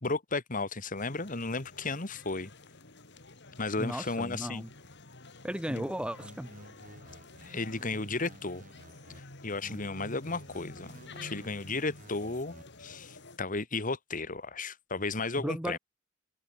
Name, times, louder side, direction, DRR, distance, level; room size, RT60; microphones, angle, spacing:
voice 1, 0.0-2.5 3.6-4.6 5.7-5.9 7.5-8.6 9.4-12.5 12.8-15.8, left 3 dB, 45° left, 2.0 m, -34 dB
sound 1, 0.9-13.4, left 2 dB, 65° left, 4.6 m, -50 dB
voice 2, 3.8-4.7 5.4-6.5 15.4-15.8, equal, 5° right, 1.3 m, -35 dB
sound 2, 6.2-9.2 9.6-12.6, right 1 dB, 45° right, 4.7 m, -53 dB
head